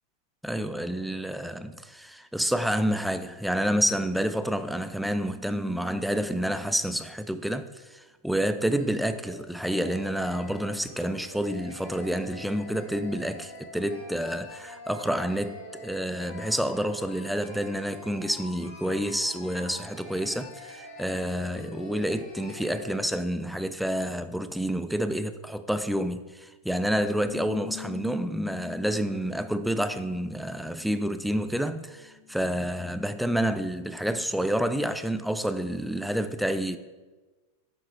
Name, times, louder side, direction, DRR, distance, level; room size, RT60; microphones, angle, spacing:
voice 1, 0.4-36.8, equal, ahead, 0.3 m, -29 dB
sound 1, 8.4-8.5 8.7-8.8 9.2-9.3 9.7-23.0, left 2 dB, 50° left, 1.8 m, -45 dB
Bass guitar, 27.3-31.6 31.9-33.5, left 16 dB, 75° left, 0.9 m, -45 dB
7.8 x 2.9 x 4.1 m
figure-of-eight pair, 90°, 0 cm